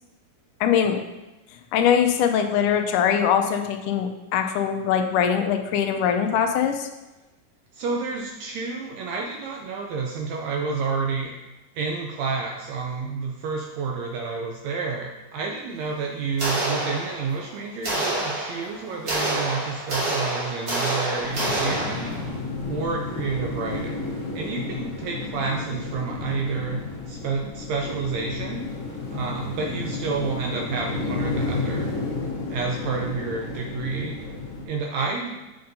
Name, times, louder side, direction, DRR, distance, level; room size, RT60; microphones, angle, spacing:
voice 1, 0.6-1.0 1.7-6.9, left 8 dB, 80° left, 6 dB, 2.1 m, -22 dB
voice 2, 7.7-11.3 11.7-22.1 22.6-24.1 24.3-28.7 29.1-31.9 32.5-34.2 34.6-35.4, right 4 dB, 85° right, 1 dB, 1.5 m, -30 dB
sound 1, 16.4-17.4 17.8-22.3, right 2 dB, 35° right, 2.4 m, -27 dB
sound 2, 21.2-34.6, left 3 dB, 65° left, 2.3 m, -32 dB
7.8 x 6.7 x 2.7 m, 1.1 s
omnidirectional pair, 3.8 m